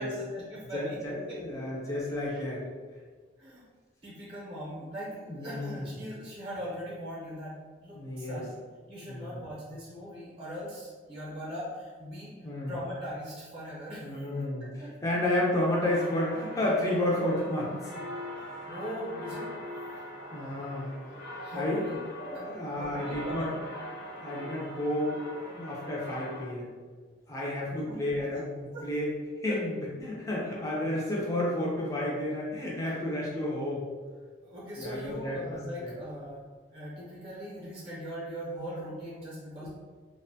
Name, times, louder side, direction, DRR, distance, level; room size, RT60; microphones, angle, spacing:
voice 1, 0.0-1.0 1.3-1.8 2.3-2.5 3.4-3.6 4.0-7.5 7.8-8.5 8.9-12.3 12.7-14.4 14.8-14.9 18.4-19.6 21.4-22.0 22.3-23.5 27.7-28.3 28.7-28.9 29.5-29.6 32.9-33.0 34.4-36.4 36.7-39.7, equal, 30° right, -6 dB, 0.6 m, -40 dB
voice 2, 0.7-2.6 5.3-6.2 7.9-8.4 9.1-9.4 12.4-12.7 14.0-17.9 20.3-20.9 21.5-21.8 22.2-23.5 24.2-25.2 25.5-26.7 27.3-29.1 29.4-33.9 34.8-35.9 39.6-39.7, left 1 dB, 15° left, -5 dB, 0.4 m, -31 dB
sound 1, 15.6-26.5, left 1 dB, 65° left, 0.9 m, -42 dB
2.5 x 2.1 x 2.6 m, 1.5 s
head